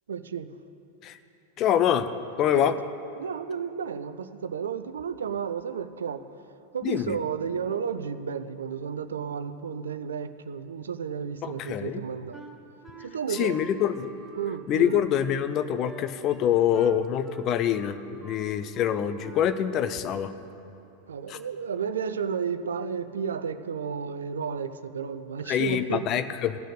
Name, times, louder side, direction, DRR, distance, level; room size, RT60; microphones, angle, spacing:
voice 1, 0.1-0.5 2.5-2.8 3.2-6.2 6.7-12.4 13.0-13.6 14.4-15.0 21.1-26.1, right 7 dB, 65° right, 12 dB, 0.5 m, -32 dB
voice 2, 1.6-2.1 2.4-2.7 6.8-7.2 11.4-12.0 13.3-14.1 14.7-18.0 18.2-20.3 21.3-21.4 25.5-26.6, left 10 dB, 35° left, 11 dB, 0.6 m, -25 dB
Wind instrument woodwind instrument, 12.3-19.8, right 2 dB, 15° right, 1.8 m, -46 dB
16.0 x 6.3 x 8.1 m, 2.8 s
figure-of-eight pair, 90°, 0 cm